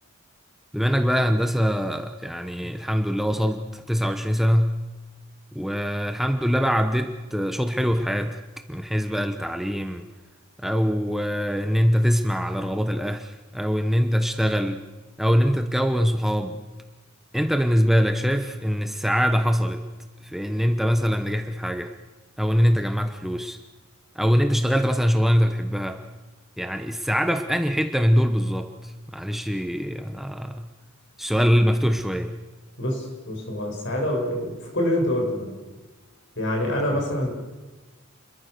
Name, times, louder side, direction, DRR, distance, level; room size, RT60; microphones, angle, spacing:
voice 1, 0.7-4.8 5.5-8.4 8.7-10.1 10.6-14.8 15.2-16.6 17.3-19.8 20.2-21.9 22.4-23.6 24.1-26.0 26.6-30.7 31.2-32.3, equal, ahead, 6 dB, 1.0 m, -23 dB
voice 2, 32.8-35.5 36.4-37.3, left 1 dB, 55° left, 1 dB, 7.5 m, -26 dB
29.5 x 22.5 x 6.8 m, 1.2 s
head